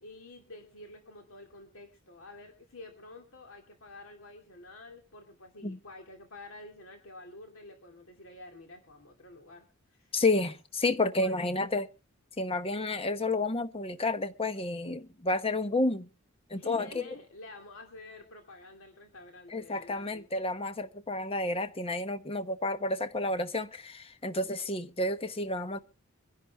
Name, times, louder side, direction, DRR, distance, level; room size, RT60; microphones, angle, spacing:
voice 1, 0.0-10.1 11.2-11.4 16.5-20.3, left 2 dB, 70° left, 2.5 m, -49 dB
voice 2, 10.1-11.9 12.4-16.1 16.5-17.0 19.5-25.8, left 2 dB, 25° left, 1.0 m, -30 dB
24.5 x 10.5 x 3.5 m
head